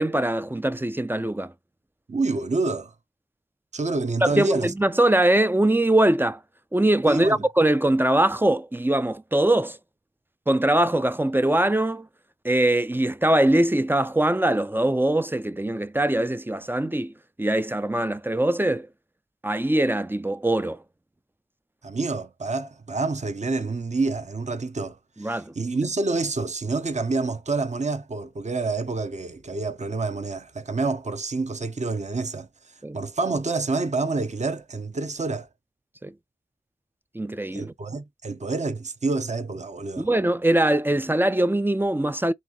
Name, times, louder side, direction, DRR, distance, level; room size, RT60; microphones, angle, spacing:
voice 1, 0.0-1.5 4.2-6.4 6.7-9.8 10.5-12.1 12.4-18.9 19.4-20.8 25.2-25.5 32.8-33.0 36.0-36.1 37.1-37.7 40.0-42.3, right 1 dB, 15° right, 0.3 m, -22 dB
voice 2, 2.1-2.9 3.7-4.7 7.1-7.4 21.8-32.5 32.9-35.5 37.5-40.1, right 3 dB, 45° right, 0.7 m, -27 dB
4.0 x 3.6 x 2.9 m
wide cardioid pair, 75°, 17 cm